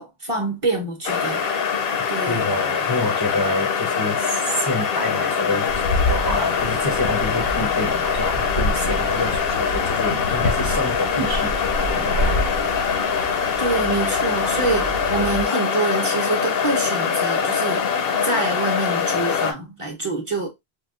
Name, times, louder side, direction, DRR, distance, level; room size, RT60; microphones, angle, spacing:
voice 1, 0.0-1.4 2.1-2.4 13.6-20.5, right 3 dB, 35° right, 0.8 m, -26 dB
sound 1, 1.1-19.5, left 6 dB, 70° left, 0.8 m, -23 dB
voice 2, 2.3-5.7 6.1-12.6, left 2 dB, 25° left, 0.5 m, -27 dB
sound 2, 5.7-15.4, left 1 dB, 90° left, 1.4 m, -28 dB
4.6 x 2.2 x 2.4 m
omnidirectional pair, 1.1 m